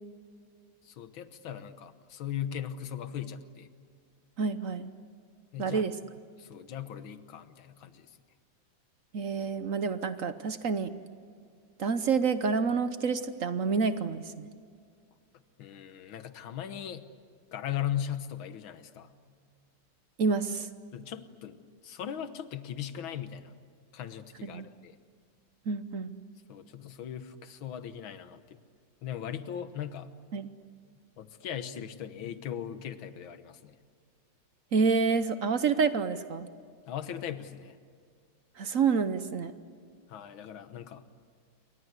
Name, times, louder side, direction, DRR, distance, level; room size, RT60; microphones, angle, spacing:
voice 1, 0.8-3.7 5.5-5.9 6.4-8.1 15.6-17.1 17.5-19.1 20.9-23.5 23.9-25.0 26.5-28.6 29.0-30.1 31.2-33.8 36.9-37.8 40.1-41.1, left 10 dB, 70° left, 11 dB, 1.9 m, -38 dB
voice 2, 4.4-4.9 5.6-5.9 9.1-10.9 11.8-14.5 20.2-20.7 24.4-24.7 25.7-26.1 30.3-30.5 34.7-36.5 38.6-39.5, right 5 dB, 55° right, 11 dB, 1.0 m, -28 dB
28.5 x 24.0 x 8.2 m, 2.1 s
omnidirectional pair, 2.3 m